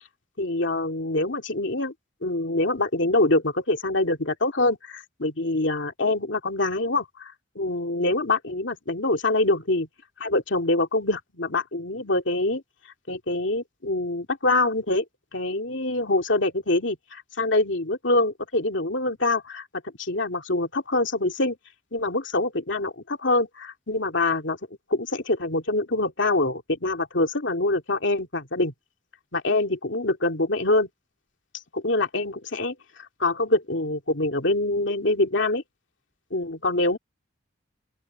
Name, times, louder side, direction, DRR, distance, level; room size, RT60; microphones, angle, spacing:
voice 1, 0.4-1.9 2.2-7.3 7.6-9.9 10.2-12.6 13.1-15.0 15.3-19.6 20.0-21.6 21.9-24.6 24.9-28.7 29.3-30.9 31.7-32.7 33.2-35.6 36.3-37.0, left 2 dB, 70° left, 2.6 m, -25 dB
open air
head